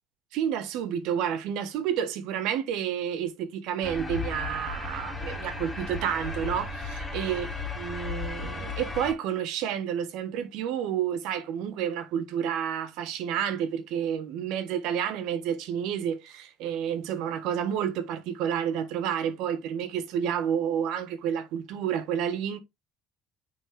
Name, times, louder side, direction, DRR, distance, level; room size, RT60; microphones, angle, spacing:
voice 1, 0.3-7.5 7.8-22.6, right 9 dB, 75° right, 1.4 m, -30 dB
sound 1, 3.8-9.1, left 3 dB, 20° left, 3.1 m, -35 dB
9.3 x 3.8 x 3.4 m
supercardioid pair, 80°, 0 cm